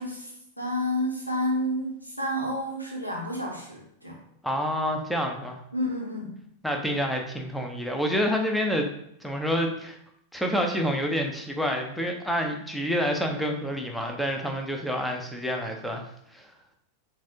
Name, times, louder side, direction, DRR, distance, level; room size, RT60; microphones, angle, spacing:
voice 1, 0.0-4.2 5.7-6.4, left 1 dB, 85° left, -1 dB, 1.2 m, -30 dB
voice 2, 4.4-5.6 6.6-8.9 9.2-10.0 10.3-16.0 16.3-16.5, equal, ahead, 2 dB, 0.7 m, -28 dB
7.2 x 2.6 x 2.8 m, 0.72 s
figure-of-eight pair, 90°, 0 cm